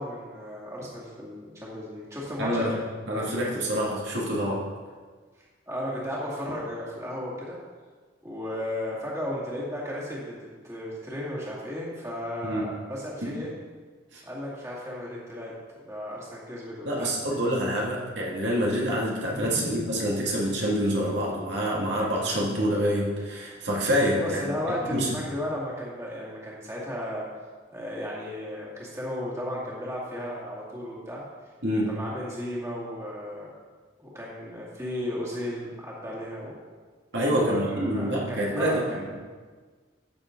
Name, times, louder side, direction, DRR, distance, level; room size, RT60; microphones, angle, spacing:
voice 1, 0.0-2.7 5.7-7.6 8.2-10.3 10.6-13.5 14.2-17.1 19.3-19.9 24.2-27.3 27.7-31.2 31.9-33.5 34.0-36.6 37.3-39.1, left 1 dB, 15° right, -6 dB, 2.3 m, -34 dB
voice 2, 2.4-2.8 3.1-4.7 12.4-12.7 13.2-13.3 14.1-14.2 16.9-24.5 24.9-25.1 31.6-31.9 37.1-38.8, equal, 65° right, -4 dB, 2.3 m, -26 dB
14.5 x 7.1 x 3.9 m, 1.5 s
head